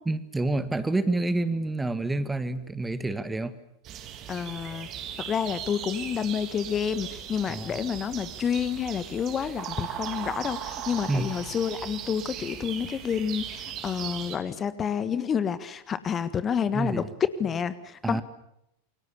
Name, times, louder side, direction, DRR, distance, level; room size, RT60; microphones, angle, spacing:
voice 1, 0.1-3.6 7.5-7.8 11.1-11.3 16.7-17.1 18.0-18.2, right 2 dB, 10° right, 13 dB, 1.6 m, -28 dB
sound 1, 3.8-14.4, right 9 dB, 35° right, 3.4 m, -38 dB
voice 2, 4.3-4.9 5.2-18.2, left 7 dB, 25° left, 14 dB, 1.6 m, -29 dB
28.5 x 24.5 x 7.0 m, 0.79 s
figure-of-eight pair, 90°, 0 cm